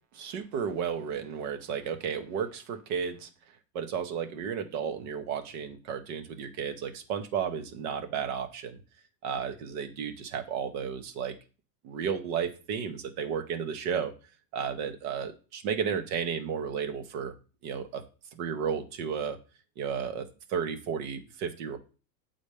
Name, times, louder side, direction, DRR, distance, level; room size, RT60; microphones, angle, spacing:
voice 1, 0.1-3.3 3.7-8.8 9.2-11.3 11.8-14.1 14.5-17.3 17.6-18.0 18.3-19.4 19.8-21.8, right 7 dB, 65° right, 8 dB, 1.0 m, -33 dB
7.3 x 4.1 x 3.3 m, 0.35 s
supercardioid pair, 110°, 47 cm